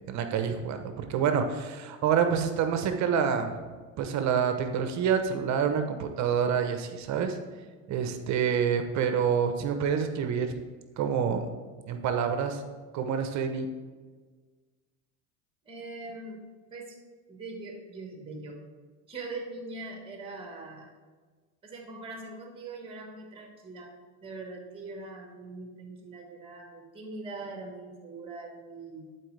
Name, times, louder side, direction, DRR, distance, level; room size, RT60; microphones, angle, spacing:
voice 1, 0.1-7.4 7.9-10.5 11.0-11.5 11.9-12.6 12.9-13.7, right 7 dB, 45° right, 7 dB, 0.8 m, -27 dB
voice 2, 15.6-16.4 16.7-17.0 17.3-18.6 19.1-20.9 21.6-23.9 24.2-29.1, right 3 dB, 15° right, 2 dB, 1.5 m, -42 dB
11.5 x 4.5 x 3.3 m, 1.4 s
supercardioid pair, 105°, 39 cm